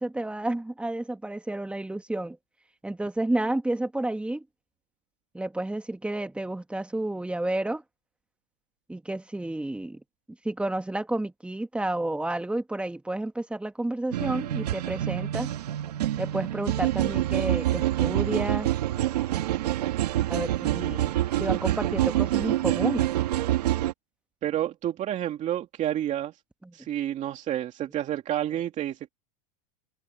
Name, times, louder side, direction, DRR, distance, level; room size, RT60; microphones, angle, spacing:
voice 1, 0.0-2.4 2.8-4.4 5.3-7.8 8.9-10.0 10.4-15.5 16.2-18.7 20.3-21.1 21.4-23.1 26.6-26.9, right 1 dB, 5° right, 1.5 m, -31 dB
sound 1, 14.1-23.9, right 13 dB, 90° right, 2.0 m, -26 dB
voice 2, 24.4-26.3 26.7-29.1, right 11 dB, 40° right, 2.4 m, -29 dB
supercardioid pair, 115°, 20 cm